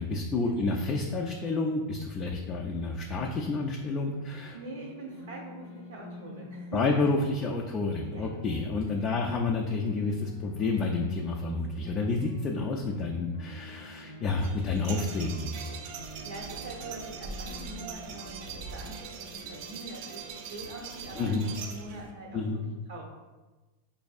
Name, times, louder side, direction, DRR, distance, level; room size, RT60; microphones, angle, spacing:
voice 1, 0.0-4.6 6.7-15.5 21.2-21.5 22.3-22.6, left 3 dB, 25° left, 0 dB, 0.3 m, -29 dB
sound 1, 4.1-20.3, equal, 75° left, 0.5 m, -49 dB
voice 2, 4.5-6.8 8.0-8.3 16.0-22.6 22.9-23.0, right 2 dB, 85° right, -3 dB, 0.8 m, -43 dB
sound 2, 14.3-22.1, right 5 dB, 55° right, 0.4 m, -41 dB
5.0 x 2.6 x 2.3 m, 1.2 s
supercardioid pair, 150°, 0 cm